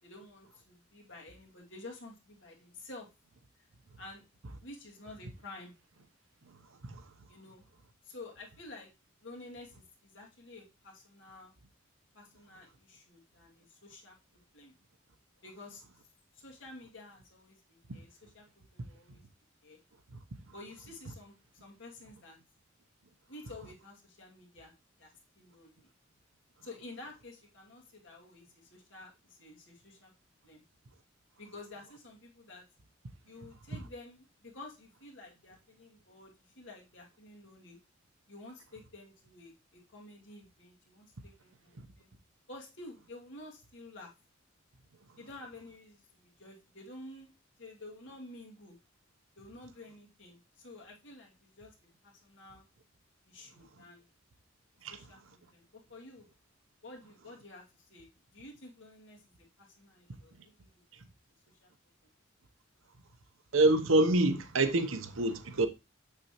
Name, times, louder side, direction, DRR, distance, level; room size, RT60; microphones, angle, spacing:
voice 1, 0.0-3.1 4.0-4.2 4.6-5.7 7.3-7.6 8.0-8.9 9.2-11.5 12.1-14.2 14.5-14.7 15.4-15.8 16.3-19.2 19.6-19.8 20.5-22.4 23.3-25.9 26.6-30.1 30.4-30.6 31.4-32.7 33.3-37.8 38.3-42.1 42.5-44.1 45.2-47.3 47.6-48.8 49.4-51.8 52.0-52.7 53.3-54.1 54.9-56.3 56.8-60.7 61.6-61.7 62.0-62.1, left 2 dB, 65° left, 2.3 m, -51 dB
voice 2, 63.5-65.7, right 2 dB, 85° right, 0.9 m, -26 dB
6.9 x 6.8 x 3.0 m
head